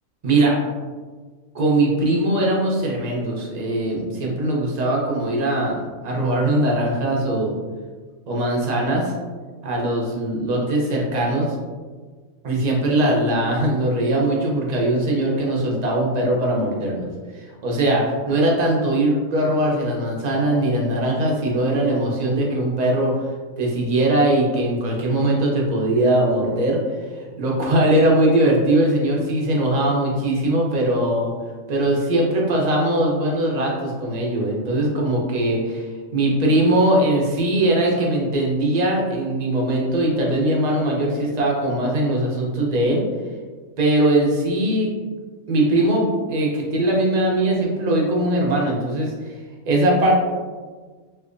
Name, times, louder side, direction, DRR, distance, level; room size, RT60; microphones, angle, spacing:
voice 1, 0.2-0.6 1.5-7.6 8.3-9.1 9.6-11.5 12.4-23.1 23.6-26.8 27.2-31.3 31.7-43.1 43.8-44.9 45.5-49.3 49.7-50.1, right 1 dB, 45° right, -2 dB, 0.6 m, -20 dB
3.3 x 2.8 x 2.5 m, 1.4 s
omnidirectional pair, 1.4 m